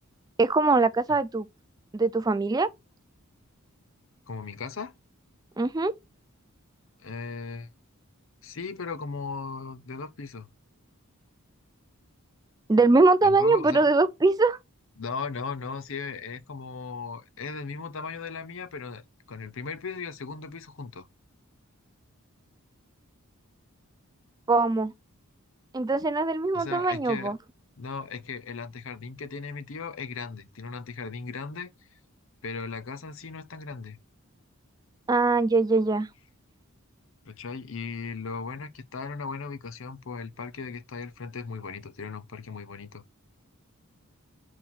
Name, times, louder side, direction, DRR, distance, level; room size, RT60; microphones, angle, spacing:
voice 1, 0.4-1.5 1.9-2.7 5.6-5.9 12.7-14.6 24.5-24.9 25.7-27.4 35.1-36.1, right 3 dB, 15° right, 0.3 m, -22 dB
voice 2, 4.3-4.9 7.0-7.7 8.4-10.5 13.2-13.9 15.0-19.0 19.3-21.1 26.5-27.3 27.8-32.0 32.4-34.0 37.2-43.0, left 4 dB, 60° left, 0.7 m, -37 dB
4.4 x 4.3 x 5.8 m
head